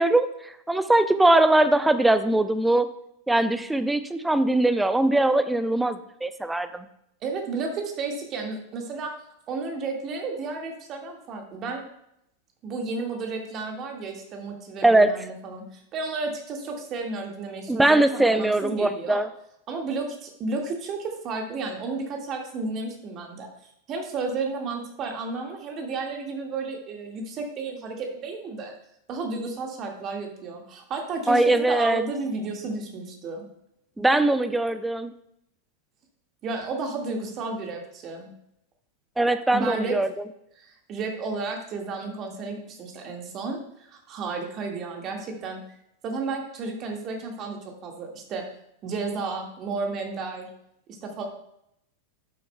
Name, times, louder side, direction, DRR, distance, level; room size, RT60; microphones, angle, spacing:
voice 1, 0.0-2.9 3.3-6.9 14.8-15.1 17.7-19.3 31.3-32.0 34.0-35.1 39.2-40.1, right 2 dB, 5° right, 12 dB, 0.5 m, -21 dB
voice 2, 7.2-9.1 9.5-11.8 12.6-19.2 19.7-23.5 23.9-28.7 29.1-33.4 36.4-38.3 39.5-40.0 40.6-45.6 46.0-48.4 48.8-50.5 51.0-51.2, right 3 dB, 35° right, 2 dB, 1.8 m, -32 dB
11.5 x 8.4 x 2.2 m, 0.76 s
figure-of-eight pair, 90°, 0 cm